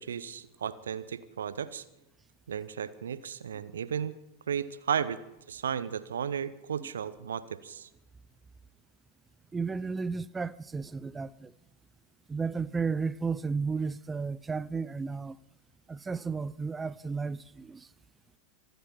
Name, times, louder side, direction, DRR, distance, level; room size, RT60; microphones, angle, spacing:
voice 1, 0.0-1.8 2.5-4.2 4.5-5.2 5.5-7.9, right 8 dB, 65° right, 0.9 m, -34 dB
voice 2, 9.5-11.5 12.3-15.4 15.9-17.8, right 4 dB, 15° right, 0.5 m, -33 dB
25.0 x 9.3 x 5.9 m
figure-of-eight pair, 90°, 0 cm